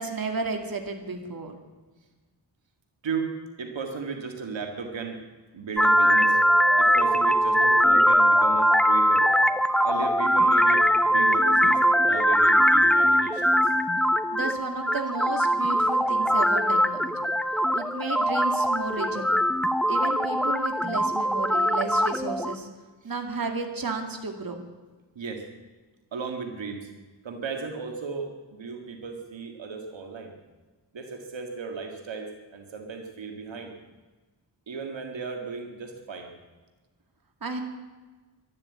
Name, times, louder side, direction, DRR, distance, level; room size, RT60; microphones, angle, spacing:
voice 1, 0.0-1.6 14.3-17.3 17.7-19.4 19.9-22.7 23.0-24.6 37.4-37.6, right 3 dB, 50° right, 4 dB, 2.4 m, -33 dB
voice 2, 3.6-5.2 5.5-6.4 6.8-9.3 9.8-13.7 23.0-23.1 25.2-25.4 26.1-26.9 27.2-30.3 30.9-33.7 34.7-36.3, right 5 dB, 80° right, 4 dB, 2.0 m, -35 dB
sound 1, 5.8-22.5, equal, ahead, 0.9 m, -21 dB
12.5 x 12.0 x 8.6 m, 1.3 s
wide cardioid pair, 75°, 44 cm